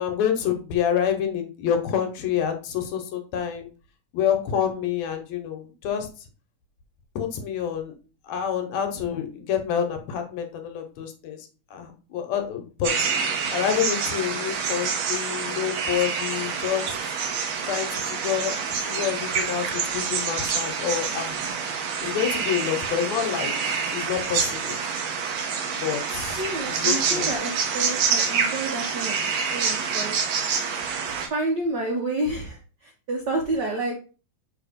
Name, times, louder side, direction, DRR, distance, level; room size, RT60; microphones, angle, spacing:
voice 1, 0.0-3.7 4.1-6.1 7.2-7.9 8.2-12.9 13.5-17.0 17.6-18.5 18.8-21.3 22.0-24.8 25.7-27.3, left 9 dB, 70° left, 5 dB, 2.0 m, -28 dB
sound 1, 12.8-31.3, right 6 dB, 70° right, 2.1 m, -27 dB
voice 2, 26.4-30.2 31.3-34.0, right 2 dB, 90° right, 1 dB, 0.9 m, -29 dB
6.7 x 2.9 x 5.1 m, 0.36 s
omnidirectional pair, 3.5 m